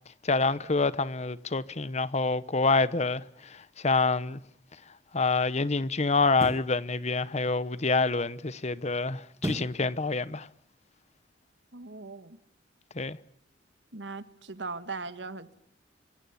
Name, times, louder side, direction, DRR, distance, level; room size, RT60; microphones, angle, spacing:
voice 1, 0.2-4.4 5.1-10.5 12.9-13.2, left 3 dB, 40° left, 1.0 m, -27 dB
sound 1, 4.4-4.6 6.3-6.8 9.4-9.9 10.3-10.4, equal, 15° right, 1.3 m, -34 dB
voice 2, 11.7-12.4 13.9-15.5, right 4 dB, 80° right, 1.9 m, -39 dB
27.0 x 25.0 x 7.0 m
head